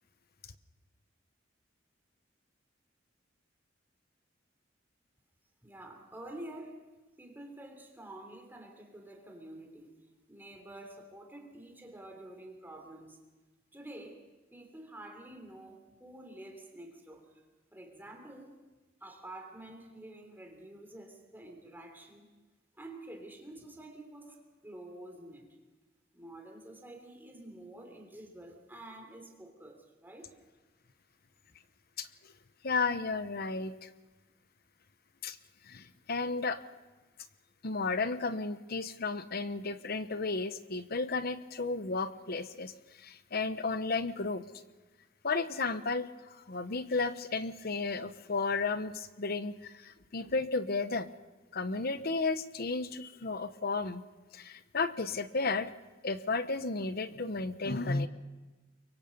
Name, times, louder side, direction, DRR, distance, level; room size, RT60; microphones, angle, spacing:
voice 1, 5.6-6.8 7.2-13.2 13.7-14.2 14.5-17.4 17.7-18.6 19.0-22.3 22.7-25.6 26.1-30.3, right 1 dB, 10° right, 3 dB, 3.4 m, -49 dB
voice 2, 32.6-33.9 35.2-35.4 35.6-36.6 37.6-44.4 45.2-51.1 51.5-54.0 54.3-55.7 56.0-58.1, left 3 dB, 50° left, 12 dB, 1.0 m, -33 dB
24.5 x 23.5 x 5.4 m, 1.2 s
head